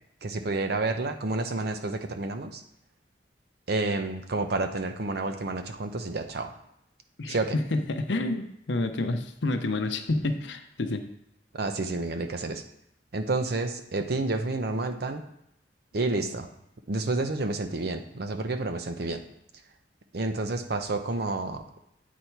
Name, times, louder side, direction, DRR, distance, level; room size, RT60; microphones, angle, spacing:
voice 1, 0.2-2.6 3.7-6.5 7.3-7.6 11.5-12.6 13.1-15.2 15.9-16.5 16.9-19.2 20.1-21.6, right 2 dB, 60° right, 7 dB, 0.7 m, -29 dB
voice 2, 7.2-11.0, left 2 dB, 75° left, 7 dB, 0.7 m, -29 dB
8.4 x 4.2 x 4.6 m, 0.78 s
head